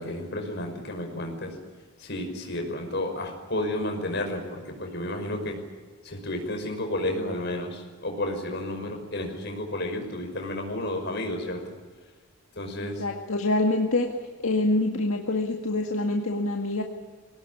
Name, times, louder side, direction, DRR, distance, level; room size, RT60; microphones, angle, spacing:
voice 1, 0.0-1.5 2.0-5.6 6.0-11.6 12.6-13.0, left 1 dB, 50° left, 3 dB, 5.7 m, -31 dB
voice 2, 12.8-14.1 14.4-16.8, left 2 dB, 75° left, 2 dB, 1.9 m, -26 dB
23.0 x 19.0 x 9.9 m, 1.4 s
head